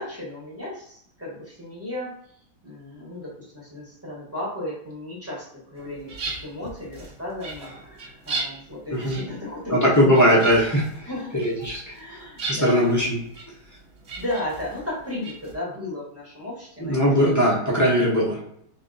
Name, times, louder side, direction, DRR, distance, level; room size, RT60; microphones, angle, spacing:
voice 1, 0.0-2.1 2.6-6.1 6.4-10.4 11.1-12.9 14.2-17.1, left 1 dB, 10° right, -5 dB, 1.2 m, -34 dB
sound 1, 5.8-15.5, right 3 dB, 50° right, 1.0 m, -38 dB
voice 2, 8.9-9.2 9.7-11.8 12.5-13.1 16.8-18.5, equal, 15° left, -6 dB, 0.7 m, -20 dB
3.2 x 2.6 x 3.9 m, 0.69 s
omnidirectional pair, 1.7 m